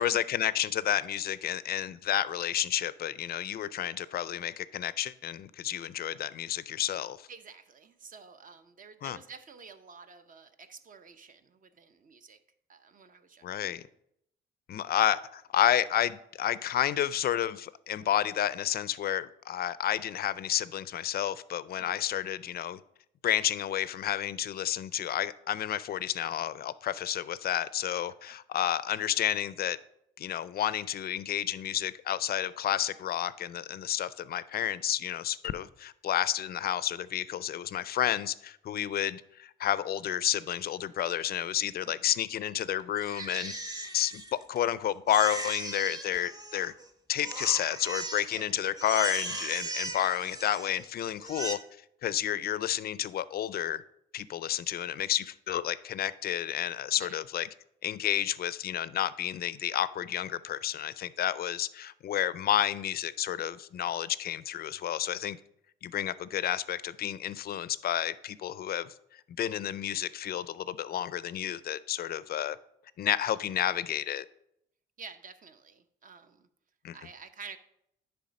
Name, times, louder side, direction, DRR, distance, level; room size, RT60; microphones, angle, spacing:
voice 1, 0.0-7.2 9.0-9.2 13.4-13.8 14.7-22.8 23.2-29.8 30.2-43.5 43.9-44.2 44.5-46.7 47.1-51.6 52.0-53.8 54.1-57.5 57.8-65.4 65.8-68.9 69.4-72.6 73.0-74.3 76.8-77.0, left 11 dB, 50° left, 0.4 m, -30 dB
voice 2, 7.3-12.4 12.7-13.7 21.8-22.0 28.2-28.3 41.8-42.1 48.4-48.7 57.0-57.2 73.2-73.3 75.0-76.5 76.9-77.6, right 5 dB, 45° right, 0.7 m, -50 dB
Crying sobbing, 43.0-44.7 45.1-46.9 47.2-48.4 48.7-50.8 51.2-51.5, right 2 dB, 20° right, 0.9 m, -38 dB
10.0 x 3.4 x 5.2 m
cardioid pair, 90°, 20 cm